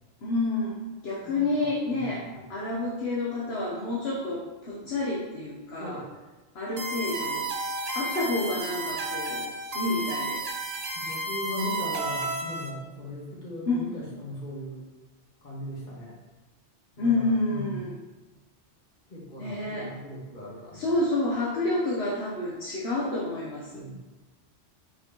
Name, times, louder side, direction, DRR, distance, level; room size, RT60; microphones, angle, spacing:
voice 1, 0.2-0.8 1.0-6.0 6.5-7.4 7.9-9.5 9.7-10.4 13.7-13.9 17.0-17.9 19.4-19.9 20.7-23.8, left 2 dB, 60° left, -5 dB, 1.2 m, -29 dB
voice 2, 1.2-2.0 5.8-6.1 10.9-14.8 15.4-16.1 16.9-17.9 19.1-21.0 23.7-23.9, left 1 dB, 40° left, -5 dB, 1.8 m, -38 dB
sound 1, 6.8-12.7, right 2 dB, 40° right, 0.7 m, -32 dB
6.0 x 5.2 x 3.0 m, 1.2 s
omnidirectional pair, 1.2 m